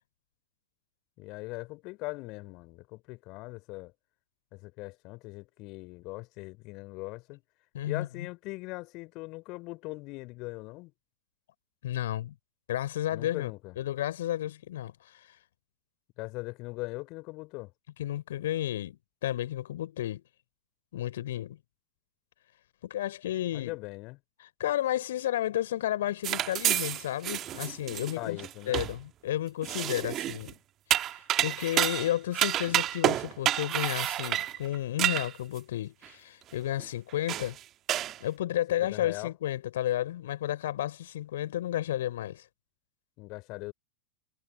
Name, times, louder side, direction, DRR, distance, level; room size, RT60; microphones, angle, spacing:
voice 1, 1.2-3.9 4.5-7.4 7.9-10.9 13.1-13.8 16.2-17.7 23.5-24.2 28.1-28.8 38.8-39.3 43.2-43.7, left 23 dB, 40° left, 3.6 m, -40 dB
voice 2, 7.7-8.3 11.8-12.4 12.7-13.5 13.8-15.3 18.0-20.2 20.9-21.6 22.8-23.8 24.4-28.4 28.7-30.6 31.1-37.6 38.2-42.5, left 13 dB, 60° left, 3.5 m, -32 dB
sound 1, 26.2-29.0 29.6-30.5 30.9-35.6 36.0-36.1 36.8-36.9 37.3-37.6 37.9-38.2, right 12 dB, 30° right, 1.5 m, -29 dB
figure-of-eight pair, 90°, 0 cm